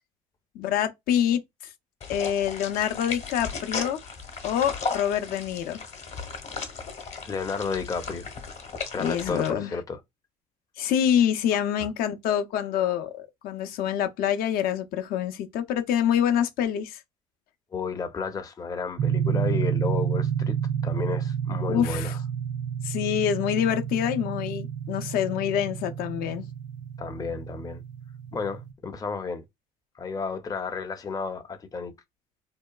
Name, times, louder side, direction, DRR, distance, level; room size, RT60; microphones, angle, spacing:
voice 1, 0.5-1.7 2.1-4.1 4.4-5.9 9.0-9.7 10.8-17.0 21.7-22.1 22.8-26.4, left 9 dB, 65° left, 0.6 m, -26 dB
sound 1, 2.0-9.5, left 5 dB, 45° left, 1.0 m, -36 dB
voice 2, 7.2-8.3 8.9-10.0 11.8-11.9 17.7-20.6 20.8-22.2 27.0-27.8 28.3-29.4 30.0-31.9, left 5 dB, 20° left, 0.5 m, -32 dB
sound 2, 19.0-28.7, right 8 dB, 50° right, 0.5 m, -30 dB
2.7 x 2.3 x 2.3 m
supercardioid pair, 80°, 16 cm